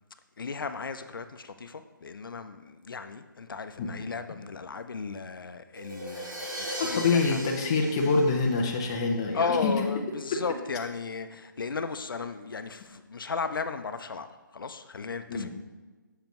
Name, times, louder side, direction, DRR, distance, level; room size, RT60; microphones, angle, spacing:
voice 1, 0.4-7.4 9.3-14.3 14.5-15.5, left 5 dB, 85° left, 9 dB, 0.6 m, -35 dB
Crash cymbal, 5.8-9.5, equal, 70° right, 2.1 m, -39 dB
voice 2, 6.8-9.7 15.3-15.5, left 4 dB, 15° left, 0 dB, 0.4 m, -25 dB
7.1 x 6.6 x 3.0 m, 1.3 s
hypercardioid pair, 170°, 11 cm